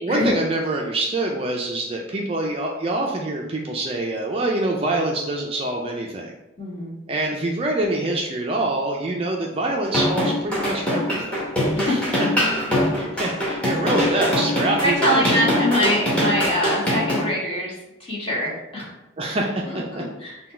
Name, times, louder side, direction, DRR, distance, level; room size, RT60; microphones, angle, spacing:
voice 1, 0.0-6.3 7.1-11.4 11.8-12.3 13.0-15.6 19.2-20.0, right 2 dB, 30° right, 0 dB, 0.3 m, -25 dB
voice 2, 6.6-6.9 11.7-12.0 14.8-18.9 19.6-20.4, equal, 30° left, -6 dB, 1.2 m, -24 dB
sound 1, 9.8-17.2, left 1 dB, 5° left, 0.9 m, -22 dB
3.8 x 2.2 x 4.3 m, 0.95 s
head